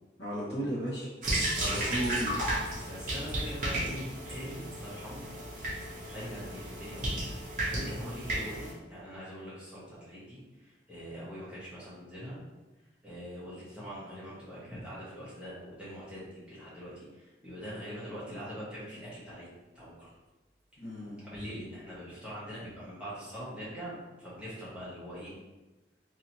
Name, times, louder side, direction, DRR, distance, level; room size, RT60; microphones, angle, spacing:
voice 1, 0.2-1.1 1.5-2.3 20.8-21.2, right 1 dB, 90° left, -5 dB, 1.2 m, -34 dB
sound 1, 1.2-8.7, right 1 dB, 45° right, 0.7 m, -34 dB
voice 2, 1.6-2.1 2.9-5.2 6.1-7.1 7.4-12.4 13.0-19.5 19.7-20.1 21.2-25.3, equal, 5° right, -10 dB, 1.0 m, -43 dB
2.9 x 2.8 x 2.8 m, 1.1 s
head